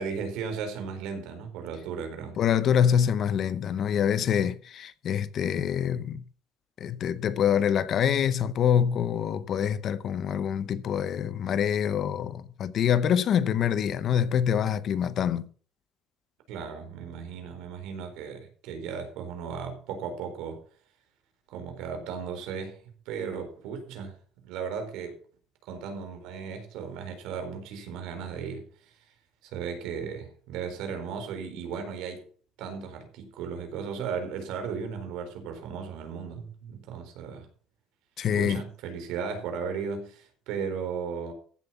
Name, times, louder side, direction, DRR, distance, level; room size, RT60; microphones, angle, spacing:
voice 1, 0.0-2.4 16.5-20.6 21.5-24.1 24.4-25.2 25.7-28.7 29.4-32.3 32.6-37.5 38.3-41.3, right 6 dB, 75° right, 4.1 m, -36 dB
voice 2, 2.4-6.2 6.8-15.5 38.2-38.6, left 8 dB, 40° left, 0.8 m, -25 dB
15.0 x 7.6 x 5.7 m
cardioid pair, 170°, 0 cm